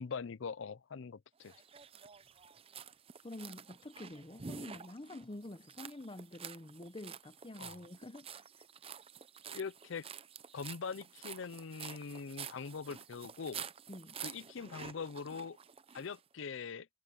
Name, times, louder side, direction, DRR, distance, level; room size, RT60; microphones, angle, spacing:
voice 1, 0.0-1.6 7.6-7.8 9.5-10.1 10.5-13.7 14.2-15.6 15.9-16.9, left 5 dB, 80° left, 0.6 m, -42 dB
sound 1, 1.4-16.2, right 7 dB, 30° right, 0.6 m, -49 dB
voice 2, 3.2-8.3 13.9-14.2, left 1 dB, 25° left, 0.8 m, -47 dB
head